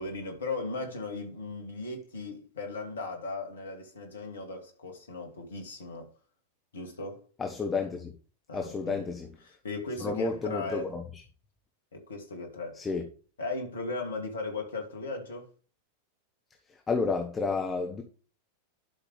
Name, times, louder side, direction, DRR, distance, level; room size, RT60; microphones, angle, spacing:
voice 1, 0.0-6.1 6.7-7.2 8.5-9.1 9.4-10.9 11.9-12.8 13.4-15.5, left 3 dB, 70° left, 2.5 m, -37 dB
voice 2, 7.4-8.1 8.5-9.3 10.0-11.2 12.7-13.0 16.7-18.0, left 4 dB, 15° left, 1.3 m, -31 dB
11.5 x 5.9 x 3.3 m
figure-of-eight pair, 90°, 0 cm